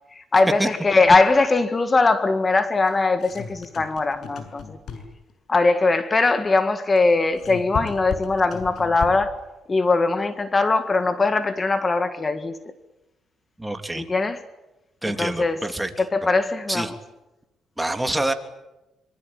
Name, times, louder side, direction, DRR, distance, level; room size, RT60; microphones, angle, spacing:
voice 1, 0.1-4.8 5.5-9.4 9.7-12.6 13.9-14.4 15.1-15.6 16.0-17.0, left 3 dB, 30° left, 1.9 m, -21 dB
sound 1, 2.9-5.3 7.0-9.4, left 6 dB, 65° left, 7.0 m, -35 dB
voice 2, 13.6-14.0 15.0-15.9 16.7-16.9 17.8-18.3, right 1 dB, 10° right, 3.0 m, -26 dB
25.5 x 24.5 x 8.9 m
cardioid pair, 90°, 0 cm